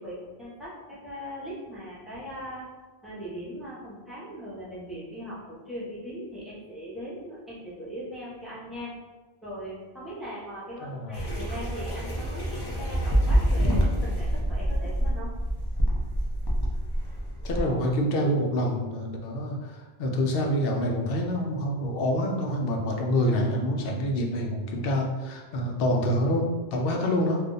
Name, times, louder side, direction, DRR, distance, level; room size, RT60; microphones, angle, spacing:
voice 1, 0.0-2.7 3.0-9.0 9.4-15.3, equal, ahead, -9 dB, 0.9 m, -39 dB
voice 2, 10.8-11.2 17.4-27.4, equal, 70° left, 1 dB, 0.8 m, -27 dB
sound 1, 11.1-17.6, equal, 30° left, 0.5 m, -26 dB
2.5 x 2.4 x 3.8 m, 1.3 s
omnidirectional pair, 1.0 m